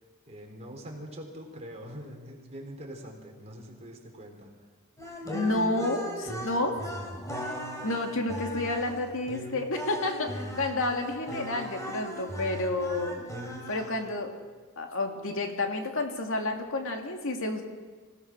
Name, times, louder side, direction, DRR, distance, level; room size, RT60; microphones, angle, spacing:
voice 1, 0.3-4.5, equal, 30° right, 1 dB, 4.0 m, -43 dB
sound 1, 5.0-14.2, equal, 15° left, 3.6 m, -38 dB
voice 2, 5.3-6.8 7.8-13.1 13.7-14.3 14.8-17.6, left 2 dB, 65° left, 3 dB, 2.6 m, -30 dB
26.0 x 17.5 x 6.3 m, 1.4 s
head